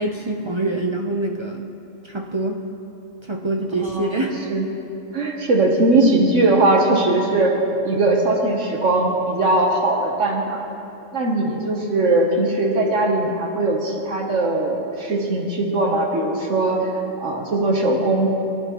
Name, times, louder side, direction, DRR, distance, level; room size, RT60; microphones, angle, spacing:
voice 1, 0.0-1.6 2.0-2.6 3.3-4.5, right 2 dB, 35° right, 1 dB, 0.4 m, -25 dB
voice 2, 3.8-4.6 5.1-7.5 7.8-10.6 11.1-16.9 17.2-18.3, right 2 dB, 65° right, 0 dB, 1.3 m, -20 dB
18.5 x 10.5 x 3.0 m, 2.8 s
omnidirectional pair, 1.4 m